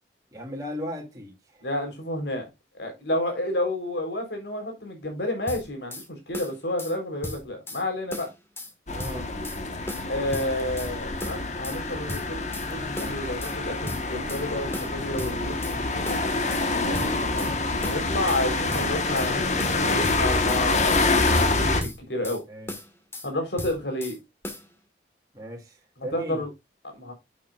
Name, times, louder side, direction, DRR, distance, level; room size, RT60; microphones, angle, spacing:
voice 1, 0.3-1.7 8.9-9.4 16.9-17.2 22.5-22.7 25.3-26.5, equal, 20° right, 2.6 m, -37 dB
voice 2, 1.6-2.5 2.7-8.3 10.1-16.2 16.6-17.0 17.3-21.5 21.8-22.4 23.2-24.2 26.1-26.5 26.8-27.1, left 1 dB, 75° left, 4.1 m, -30 dB
sound 1, 5.5-6.1 6.3-7.0 7.2-7.8 8.1-8.7 9.0-9.6 9.9-10.9 11.2-11.8 12.1-12.7 13.0-13.6 13.9-14.5 14.7-15.8 16.1-16.7 16.9-17.5 17.8-18.4 18.7-19.3 19.6-20.6 20.9-21.5 21.8-22.4 22.7-23.3 23.6-24.2 24.4-24.7, left 1 dB, 15° left, 1.7 m, -36 dB
sound 2, 8.9-21.8, left 3 dB, 40° left, 1.4 m, -26 dB
11.0 x 7.2 x 2.5 m
head